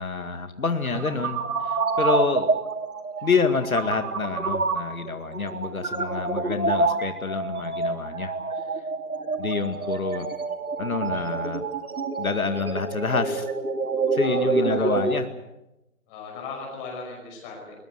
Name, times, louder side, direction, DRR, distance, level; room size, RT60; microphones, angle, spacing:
voice 1, 0.0-2.5 3.2-8.3 9.4-10.3 10.8-11.6 12.2-13.5 14.1-15.2, left 4 dB, 75° left, 8 dB, 2.1 m, -27 dB
sound 1, 0.7-15.2, right 3 dB, 80° right, 2.8 m, -27 dB
Drum, 0.9-3.6, right 5 dB, 35° right, 4.0 m, -44 dB
voice 2, 9.7-10.3 14.2-15.0 16.1-17.7, left 4 dB, 15° left, 0 dB, 5.4 m, -38 dB
21.5 x 21.5 x 8.1 m, 0.95 s
figure-of-eight pair, 165°, 43 cm